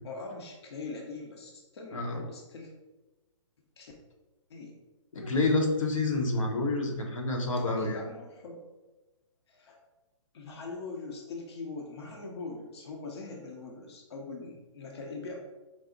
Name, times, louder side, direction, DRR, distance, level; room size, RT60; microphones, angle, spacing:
voice 1, 0.0-2.7 3.8-3.9 4.5-4.7 7.5-8.6 9.5-9.8 10.3-15.4, left 3 dB, 55° left, 0 dB, 0.7 m, -42 dB
voice 2, 5.1-8.0, left 2 dB, 90° left, 1 dB, 1.0 m, -28 dB
4.8 x 2.0 x 3.8 m, 1.1 s
hypercardioid pair, 165°, 17 cm